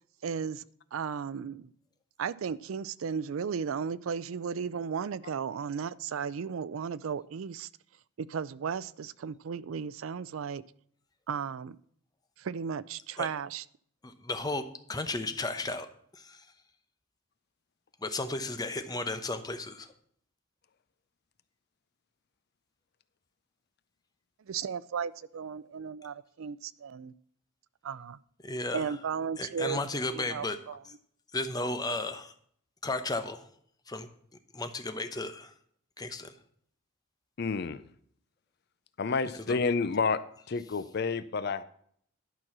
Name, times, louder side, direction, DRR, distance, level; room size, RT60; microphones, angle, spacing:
voice 1, 0.2-0.6 0.9-1.7 2.2-7.7 8.2-10.6 11.3-11.8 12.4-13.6 24.5-27.1 27.8-28.2 28.7-29.8 30.1-30.8, right 6 dB, 85° right, 19 dB, 0.4 m, -35 dB
voice 2, 14.0-14.6 14.9-15.9 16.1-16.4 18.0-19.9 28.4-28.9 29.4-30.6 31.3-32.3 32.8-33.4 33.9-34.1 34.5-35.5 36.0-36.3 39.5-39.6, left 2 dB, 20° left, 9 dB, 0.8 m, -34 dB
voice 3, 37.4-37.8 39.0-40.2 40.5-41.6, left 4 dB, 55° left, 14 dB, 0.5 m, -29 dB
11.5 x 6.2 x 6.0 m, 0.63 s
head